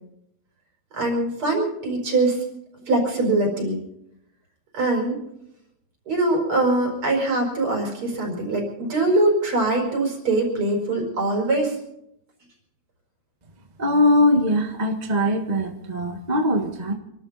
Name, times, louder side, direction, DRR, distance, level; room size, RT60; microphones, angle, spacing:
voice 1, 0.9-2.4 2.9-3.8 4.7-5.2 6.1-11.8, right 2 dB, 45° right, 1 dB, 5.6 m, -22 dB
voice 2, 13.8-16.9, left 1 dB, 25° right, 3 dB, 1.0 m, -21 dB
27.5 x 13.0 x 4.1 m, 0.80 s
omnidirectional pair, 3.3 m